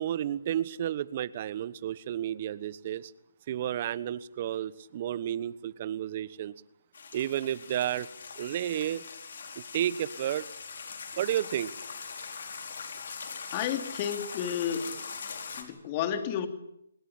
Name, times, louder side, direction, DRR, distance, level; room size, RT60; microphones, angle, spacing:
voice 1, 0.0-3.1 3.5-6.5 7.1-8.1 8.4-9.0 9.6-10.5 11.2-11.7, right 11 dB, 40° right, 19 dB, 1.2 m, -31 dB
sound 1, 6.9-15.6, left 5 dB, 60° left, 4.8 m, -41 dB
voice 2, 13.5-14.9 15.6-16.5, left 9 dB, 30° left, 8 dB, 3.2 m, -31 dB
26.0 x 21.0 x 8.8 m, 0.81 s
figure-of-eight pair, 145°, 0 cm